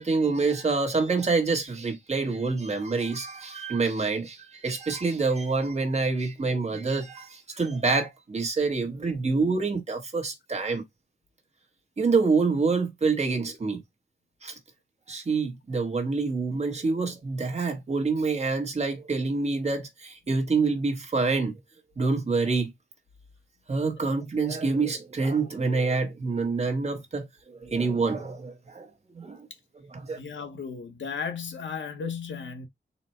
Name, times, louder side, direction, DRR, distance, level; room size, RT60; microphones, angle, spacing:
voice 1, 0.0-10.8 12.0-13.8 14.4-14.5 15.1-21.5 22.0-22.7 23.7-28.9 29.1-29.5 29.8-30.2, right 4 dB, 35° right, 1.1 m, -27 dB
voice 2, 30.2-32.7, left 6 dB, 85° left, 0.9 m, -35 dB
4.1 x 2.1 x 4.2 m
wide cardioid pair, 145°, 19 cm